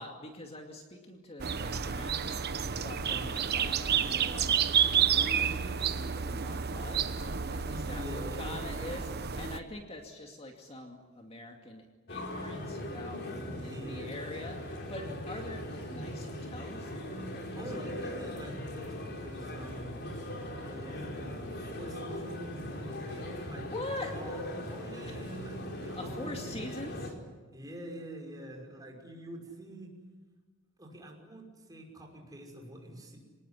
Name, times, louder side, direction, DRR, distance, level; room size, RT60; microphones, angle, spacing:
voice 1, 0.0-4.5 5.1-13.2 13.6-17.9 23.6-24.1 25.1-25.2 25.9-27.1, left 2 dB, 30° left, 2 dB, 2.4 m, -44 dB
sound 1, 1.4-9.6, right 7 dB, 50° right, 1.1 m, -30 dB
voice 2, 7.6-8.7 13.2-14.2 17.5-20.0 20.5-23.7 24.1-26.8 27.5-29.9 30.8-33.2, right 1 dB, 20° right, 1 dB, 5.8 m, -45 dB
sound 2, 12.1-27.1, left 1 dB, 55° left, 4.7 m, -40 dB
26.0 x 19.5 x 10.0 m, 1.4 s
head